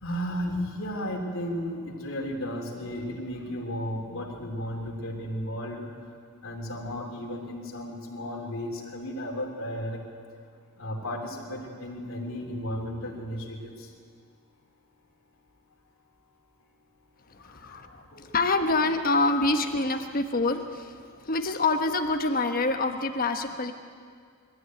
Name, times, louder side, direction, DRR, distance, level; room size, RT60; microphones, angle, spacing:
voice 1, 0.0-5.9 6.4-10.0 10.8-13.7 17.6-17.7 18.1-18.2, equal, 65° left, 0 dB, 3.2 m, -34 dB
voice 2, 17.3-23.7, left 3 dB, 40° left, 6 dB, 1.2 m, -26 dB
22.0 x 13.5 x 9.2 m, 2.2 s
head